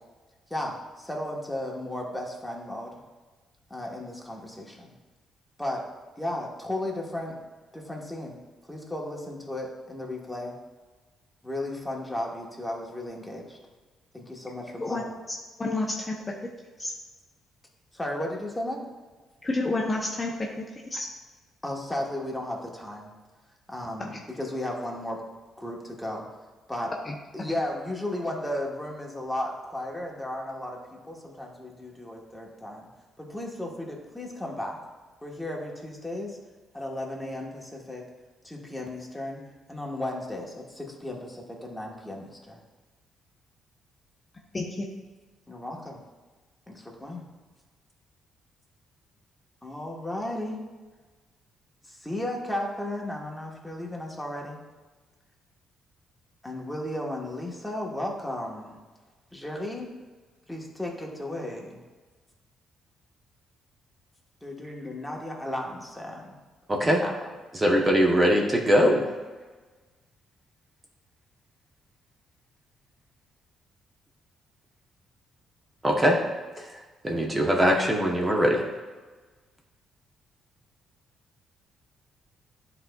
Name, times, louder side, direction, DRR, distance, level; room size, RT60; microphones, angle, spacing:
voice 1, 0.5-2.9 3.7-4.9 5.6-5.9 6.2-7.4 7.7-8.4 8.7-10.5 11.4-13.6 14.1-15.1 17.9-18.8 21.6-23.1 23.7-25.2 25.6-26.2 26.7-26.9 27.3-32.9 33.2-34.8 35.2-36.4 36.7-38.0 38.4-39.4 39.7-42.6 45.5-46.0 46.7-47.2 49.6-50.6 51.8-54.6 56.4-58.8 59.3-59.9 60.5-61.8 64.4-66.3 67.0-67.1, left 1 dB, 5° left, -1 dB, 1.3 m, -34 dB
voice 2, 15.6-16.1 16.8-16.9 19.4-20.3 20.9-21.1 27.1-27.2 44.5-44.8, left 2 dB, 25° left, 0 dB, 0.7 m, -29 dB
voice 3, 66.7-67.0 67.6-69.1 75.8-76.2 76.6-76.7 77.0-78.6, equal, 20° right, 0 dB, 0.8 m, -21 dB
10.5 x 4.0 x 2.3 m, 1.3 s
cardioid pair, 90°, 0 cm